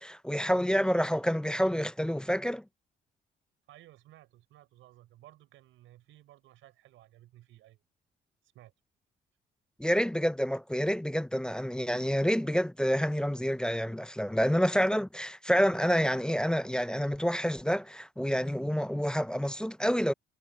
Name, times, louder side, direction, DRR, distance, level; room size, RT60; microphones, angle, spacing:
voice 1, 0.0-2.6 9.8-20.1, equal, 5° left, 0.4 m, -28 dB
voice 2, 3.7-7.8 8.5-8.7, right 15 dB, 90° right, 4.8 m, -56 dB
cardioid pair, 90°, 20 cm